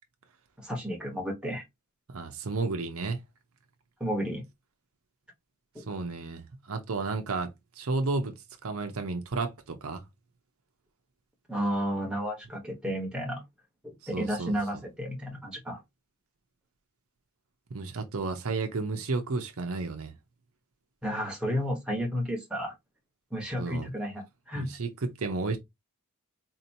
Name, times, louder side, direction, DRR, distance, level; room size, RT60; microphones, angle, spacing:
voice 1, 0.6-1.6 4.0-4.4 5.7-5.9 11.5-13.4 13.8-15.8 21.0-22.7 23.3-24.7, equal, 5° right, 1.2 m, -32 dB
voice 2, 2.1-3.2 5.9-10.0 14.1-14.8 17.7-20.1 23.6-23.9 24.5-25.6, right 3 dB, 65° right, 0.7 m, -32 dB
4.2 x 2.8 x 2.7 m
head